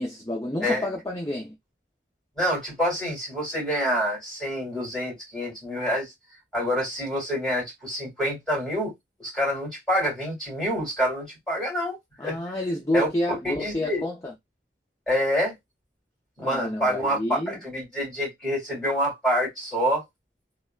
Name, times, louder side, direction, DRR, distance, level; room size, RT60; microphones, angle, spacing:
voice 1, 0.0-1.5 12.2-14.3 16.4-17.6, left 1 dB, 20° left, 0.4 m, -29 dB
voice 2, 2.4-6.1 6.5-8.9 9.2-12.0 12.2-12.4 12.9-13.1 13.4-14.0 15.1-15.5 16.4-17.2 17.5-20.0, equal, ahead, 2.1 m, -27 dB
3.3 x 2.2 x 2.2 m
head